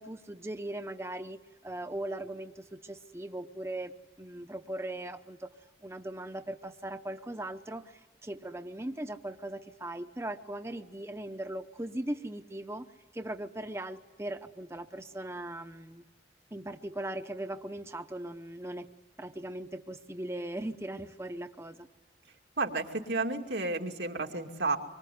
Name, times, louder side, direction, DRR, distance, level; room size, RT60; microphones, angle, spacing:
voice 1, 0.0-5.5 5.8-12.8 13.1-16.1 16.5-18.9 19.2-21.9, right 1 dB, 15° right, 7 dB, 0.8 m, -39 dB
voice 2, 22.6-24.8, right 3 dB, 85° right, 3 dB, 2.6 m, -31 dB
26.0 x 24.0 x 9.5 m, 1.2 s
head